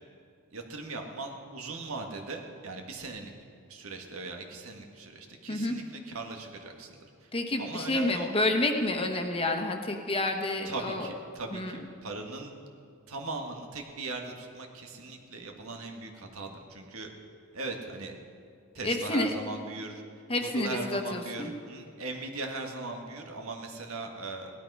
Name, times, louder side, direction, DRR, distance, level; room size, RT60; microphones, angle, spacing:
voice 1, 0.5-3.3 3.6-7.3 7.6-8.3 10.6-12.5 13.1-17.1 17.5-18.2 18.7-20.0 20.4-24.5, right 3 dB, 85° right, 3 dB, 1.7 m, -39 dB
voice 2, 7.3-11.1 11.5-11.8 18.8-19.3 20.3-21.5, left 2 dB, 25° left, 4 dB, 1.2 m, -29 dB
17.0 x 12.0 x 5.6 m, 2.3 s
head